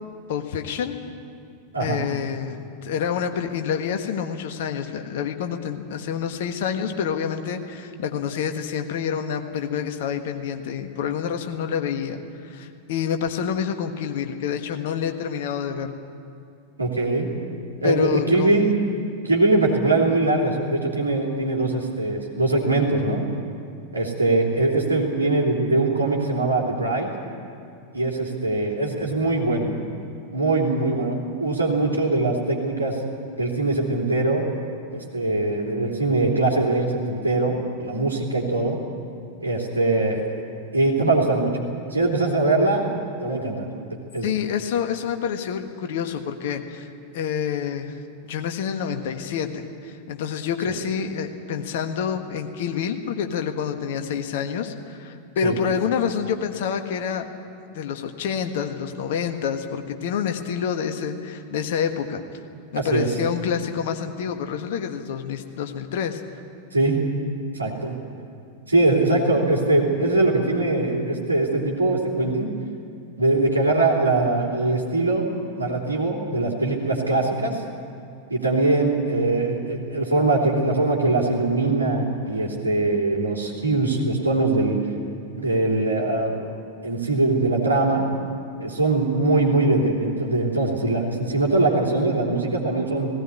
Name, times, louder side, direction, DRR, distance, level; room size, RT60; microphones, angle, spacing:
voice 1, 0.3-1.0 1.8-15.9 17.8-18.8 44.2-46.9 47.1-48.0 48.3-57.3 57.7-62.2 62.7-66.2, left 7 dB, 55° left, 6 dB, 1.5 m, -27 dB
voice 2, 16.8-17.3 17.8-18.7 19.2-23.2 23.9-27.1 27.9-29.7 30.3-33.0 33.4-34.5 34.9-38.8 39.4-40.3 40.7-41.5 41.9-42.9 43.2-43.7 44.1-44.2 50.6-50.7 55.4-55.6 62.7-63.1 66.7-67.0 67.5-67.9 68.7-72.5 73.2-75.3 75.6-77.6 78.3-84.8 85.4-86.4 86.8-88.0 88.6-93.1, right 2 dB, 80° right, -1 dB, 3.2 m, -22 dB
18.0 x 17.0 x 9.7 m, 2.5 s
figure-of-eight pair, 90°, 0 cm